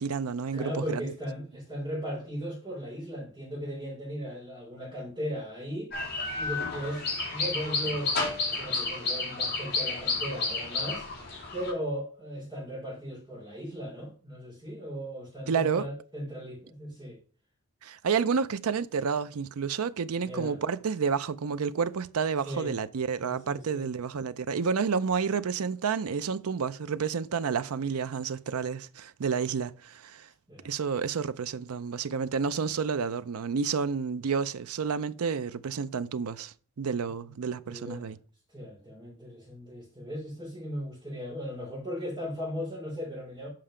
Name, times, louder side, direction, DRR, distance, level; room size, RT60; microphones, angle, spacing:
voice 1, 0.0-1.1 15.5-15.9 17.8-30.3 30.6-38.2, right 6 dB, 80° right, 0.5 m, -30 dB
voice 2, 0.5-5.9 6.4-11.1 11.5-17.2 20.2-20.6 22.5-22.8 23.2-23.9 30.5-30.7 37.6-38.1 38.5-43.5, equal, 20° right, 3.9 m, -37 dB
sound 1, 5.9-11.7, left 3 dB, 45° left, 3.2 m, -31 dB
7.6 x 5.5 x 5.0 m
head